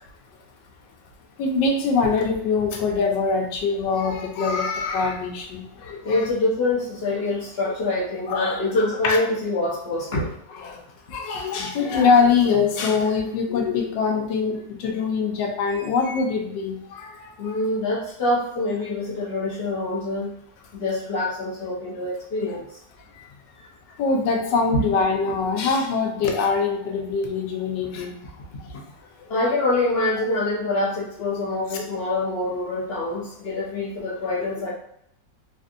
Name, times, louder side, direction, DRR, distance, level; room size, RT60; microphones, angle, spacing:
voice 1, 1.4-6.3 7.1-7.2 7.7-7.8 8.3-9.2 10.5-10.8 11.1-17.5 23.1-23.3 24.0-28.8 29.3-29.5 31.3-31.4 31.7-31.8 34.4-34.7, left 5 dB, 80° left, 1 dB, 1.3 m, -24 dB
voice 2, 6.0-10.3 17.4-20.3 20.7-22.6 24.7-24.9 29.3-34.7, left 2 dB, 55° left, -5 dB, 0.6 m, -25 dB
3.4 x 2.6 x 2.5 m, 0.73 s
omnidirectional pair, 2.0 m